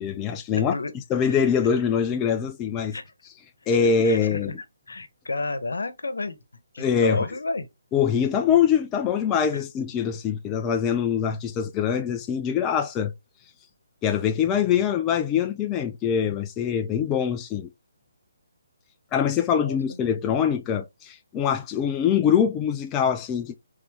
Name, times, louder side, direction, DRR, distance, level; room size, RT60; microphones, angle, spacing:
voice 1, 0.0-0.7 1.1-3.0 3.7-4.5 6.8-7.2 7.9-13.1 14.0-17.7 19.1-23.5, left 7 dB, 15° left, 0.4 m, -23 dB
voice 2, 3.8-4.4 4.9-6.4 6.7-7.7 9.5-9.6 19.5-20.0, left 3 dB, 85° left, 1.0 m, -31 dB
3.6 x 3.4 x 3.4 m
hypercardioid pair, 155°, 0 cm